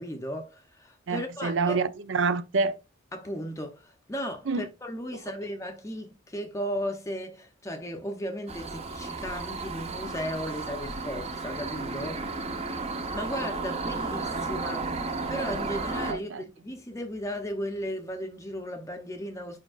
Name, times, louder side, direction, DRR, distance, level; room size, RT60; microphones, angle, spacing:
voice 1, 0.0-1.8 3.1-12.5 13.1-14.9 15.3-19.6, equal, 15° left, 0.6 m, -35 dB
voice 2, 1.1-2.8 4.5-4.7 16.1-16.4, right 4 dB, 70° right, 0.6 m, -27 dB
sound 1, 8.5-16.1, right 3 dB, 30° right, 0.8 m, -33 dB
7.6 x 5.1 x 2.4 m
head